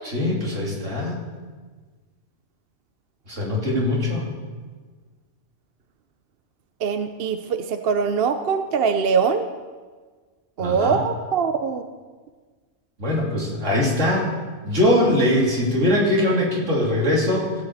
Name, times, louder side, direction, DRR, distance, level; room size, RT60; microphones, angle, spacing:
voice 1, 0.0-1.2 3.3-4.3 10.6-11.0 13.0-14.3 14.6-17.6, left 1 dB, 75° right, -3 dB, 3.1 m, -21 dB
voice 2, 6.8-9.5 10.6-11.8, right 6 dB, 60° right, 8 dB, 0.8 m, -22 dB
16.5 x 5.7 x 7.8 m, 1.4 s
omnidirectional pair, 1.3 m